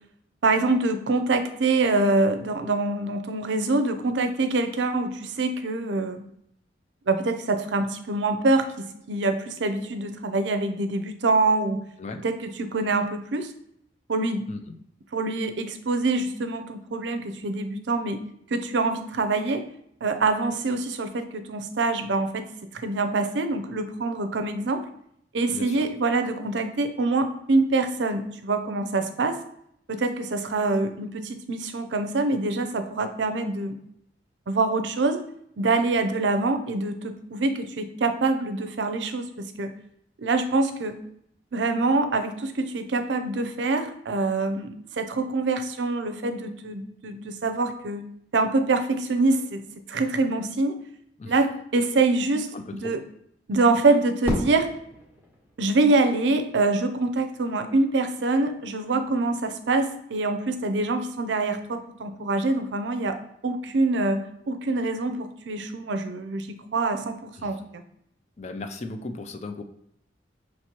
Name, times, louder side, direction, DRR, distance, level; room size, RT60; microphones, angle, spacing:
voice 1, 0.4-6.2 7.1-11.8 12.2-13.5 14.1-14.5 15.1-18.2 18.5-19.6 20.0-24.8 25.3-29.4 29.9-33.8 34.5-35.2 35.6-39.7 40.2-41.0 41.5-48.0 48.3-50.8 51.3-53.0 53.5-54.7 55.6-63.2 63.4-67.8, right 3 dB, 75° right, 8 dB, 0.5 m, -25 dB
voice 2, 52.5-52.9 67.4-67.5 68.4-69.6, left 3 dB, 40° left, 7 dB, 0.4 m, -36 dB
Fireworks, 54.2-56.4, equal, 10° right, 1.2 m, -33 dB
5.9 x 3.1 x 2.9 m, 0.72 s
head